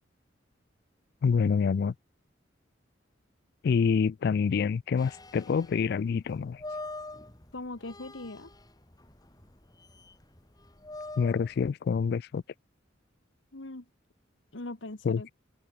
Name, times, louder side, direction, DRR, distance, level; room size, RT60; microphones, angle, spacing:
voice 1, 1.2-1.9 3.6-6.6 11.2-12.4 15.0-15.3, left 6 dB, 55° left, 0.3 m, -27 dB
grincements helvetia, 5.0-11.7, left 2 dB, 20° left, 3.0 m, -45 dB
voice 2, 7.5-8.5 13.5-13.8 14.5-15.3, left 2 dB, 75° left, 1.7 m, -40 dB
open air
head